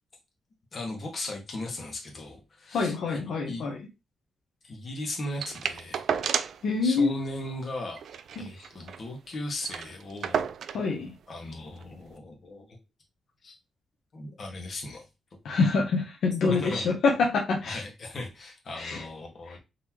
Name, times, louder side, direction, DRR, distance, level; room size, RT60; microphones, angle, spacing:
voice 1, 0.7-2.9 3.2-3.6 4.6-6.0 6.8-8.0 8.4-10.5 11.3-12.8 13.4-13.5 14.1-15.1 15.6-15.7 16.4-16.9 17.7-19.6, left 1 dB, 40° left, 0 dB, 1.3 m, -37 dB
voice 2, 2.7-3.8 6.6-7.1 8.4-8.5 10.7-11.1 15.4-17.8 18.7-19.0, left 4 dB, 70° left, 1 dB, 0.8 m, -26 dB
sound 1, 5.4-6.7 7.0-7.1 7.4-7.6 8.0-9.1 9.3-9.4 9.6-10.9 11.8-11.9, right 7 dB, 60° right, 0.3 m, -31 dB
3.9 x 3.1 x 3.0 m, 0.25 s
wide cardioid pair, 150°, 0 cm